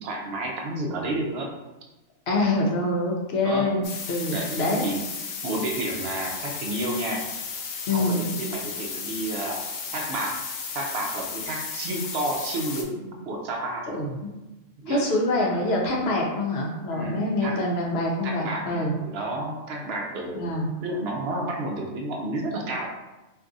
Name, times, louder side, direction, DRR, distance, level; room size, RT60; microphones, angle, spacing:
voice 1, 0.0-1.5 3.4-3.7 4.3-5.0 5.4-7.2 7.9-9.7 9.9-10.4 10.7-13.9 14.8-15.0 16.9-17.6 18.2-22.9, right 2 dB, 65° right, 0 dB, 0.7 m, -31 dB
voice 2, 2.3-4.8 7.9-8.2 13.9-14.1 14.9-18.9 20.3-20.7, left 2 dB, 60° left, -1 dB, 0.8 m, -25 dB
sound 1, 3.8-12.8, left 5 dB, 90° left, 1.0 m, -34 dB
2.6 x 2.4 x 3.7 m, 1.1 s
omnidirectional pair, 1.3 m